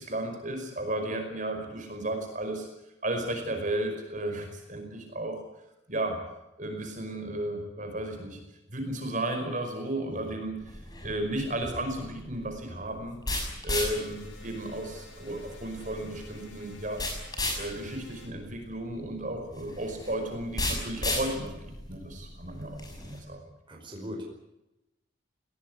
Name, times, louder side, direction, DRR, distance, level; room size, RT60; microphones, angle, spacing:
voice 1, 0.0-2.7 3.0-5.4 5.9-6.2 6.6-8.4 8.7-13.2 13.6-17.0 17.5-23.4, right 1 dB, 40° right, 5 dB, 5.2 m, -34 dB
sound 1, 10.6-23.2, left 2 dB, 20° left, 6.2 m, -36 dB
sound 2, 13.9-18.3, left 4 dB, 85° left, 7.1 m, -52 dB
voice 2, 23.7-24.2, equal, 25° right, 0 dB, 5.1 m, -40 dB
20.5 x 18.5 x 9.7 m, 0.92 s
head